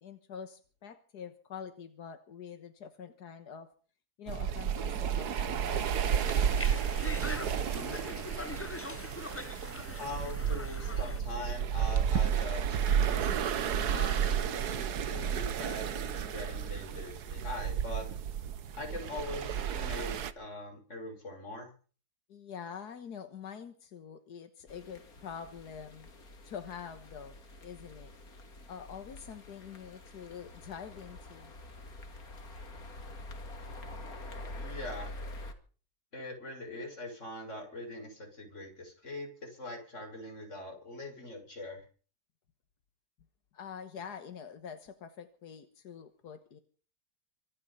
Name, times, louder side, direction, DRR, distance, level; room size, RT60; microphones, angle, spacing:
voice 1, 0.0-3.7 4.2-5.9 22.3-26.1 26.4-27.4 27.6-28.1 28.7-31.5 43.5-46.6, left 7 dB, 90° left, 9 dB, 1.9 m, -45 dB
sound 1, 4.3-20.3, right 8 dB, 80° right, 1.6 m, -32 dB
Conversation, 5.7-11.2, left 2 dB, 15° left, 0.5 m, -42 dB
voice 2, 7.7-8.3 10.0-13.3 13.8-18.1 18.8-21.7 34.6-35.1 36.1-41.9, left 1 dB, 50° left, 2 dB, 6.4 m, -42 dB
sound 2, 24.7-35.5, left 1 dB, 65° left, 2.9 m, -46 dB
25.0 x 9.8 x 5.6 m, 0.40 s
omnidirectional pair, 1.7 m